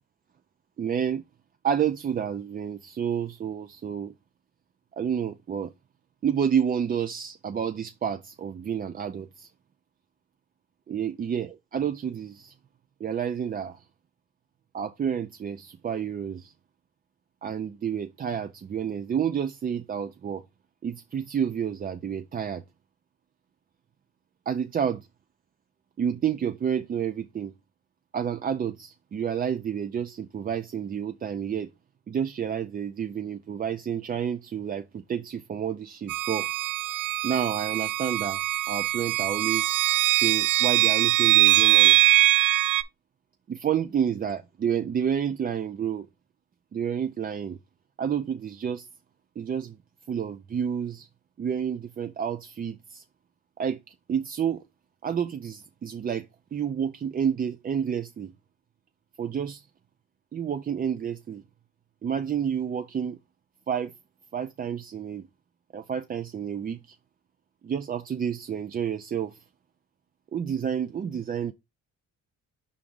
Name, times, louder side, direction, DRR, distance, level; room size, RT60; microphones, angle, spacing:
voice 1, 0.8-1.2 1.6-4.1 5.0-5.7 6.2-9.5 10.9-12.5 13.0-13.8 14.7-16.5 17.4-20.4 20.8-22.6 24.5-25.1 26.0-27.5 28.1-31.7 32.1-36.5 37.2-39.8 40.1-42.0 43.5-46.1 46.7-47.6 48.0-48.9 49.4-49.8 50.1-51.1 51.4-53.0 53.6-54.6 55.0-58.3 59.2-59.7 60.3-61.4 62.0-63.2 63.7-63.9 64.3-65.3 65.7-67.0 67.6-69.4 70.3-71.5, right 8 dB, 30° right, 0.4 m, -30 dB
sound 1, 36.1-42.8, right 17 dB, 90° right, 0.5 m, -22 dB
4.9 x 3.6 x 5.3 m
cardioid pair, 90°, 30 cm